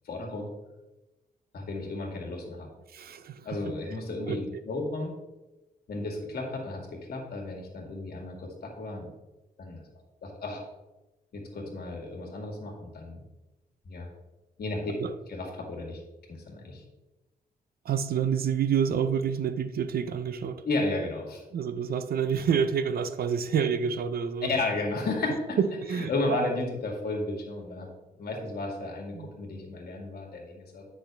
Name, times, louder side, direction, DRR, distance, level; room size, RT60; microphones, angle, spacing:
voice 1, 0.1-0.5 1.5-2.7 3.4-5.1 5.9-9.1 9.6-9.8 10.2-10.6 11.3-13.2 13.8-14.1 14.6-14.8 15.3-16.0 16.3-16.8 20.6-21.4 24.5-25.6 25.9-27.9 28.2-30.8, left 2 dB, 75° left, 2.1 m, -33 dB
voice 2, 2.9-3.7 4.3-4.4 15.0-15.1 17.8-20.7 21.5-24.5 25.6-26.5 29.1-29.3, right 7 dB, 70° right, 0.6 m, -28 dB
8.2 x 6.2 x 3.4 m
cardioid pair, 100°, 16 cm